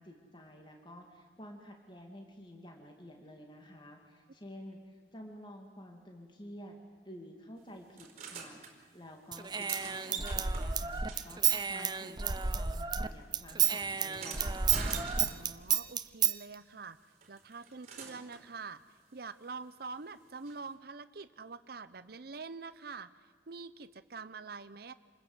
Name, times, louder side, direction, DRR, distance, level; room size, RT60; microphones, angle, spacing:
voice 1, 0.0-6.8 7.0-14.6, equal, 25° left, 2 dB, 2.5 m, -51 dB
sound 1, 8.0-8.7 9.3-12.3 12.6-15.7 17.2-18.5 20.5-20.6, right 5 dB, 40° right, 4.6 m, -45 dB
Human voice / Scissors, 9.3-13.1 13.3-16.4, right 7 dB, 25° right, 0.7 m, -31 dB
voice 2, 15.0-17.0 17.3-18.8 19.1-23.1 23.5-24.9, right 4 dB, 60° right, 12 dB, 0.7 m, -45 dB
27.5 x 21.0 x 8.0 m, 1.5 s
head